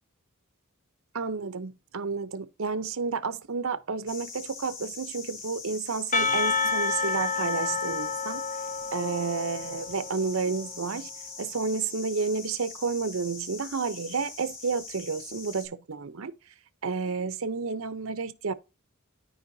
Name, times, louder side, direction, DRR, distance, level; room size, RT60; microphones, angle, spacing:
voice 1, 1.1-8.4 8.9-11.1 11.4-16.3 16.8-18.5, right 4 dB, 70° right, 0.7 m, -31 dB
sound 1, 4.1-15.7, left 5 dB, 65° left, 2.1 m, -43 dB
Percussion / Church bell, 6.1-10.7, left 4 dB, 35° left, 0.7 m, -29 dB
12.5 x 4.7 x 2.7 m
head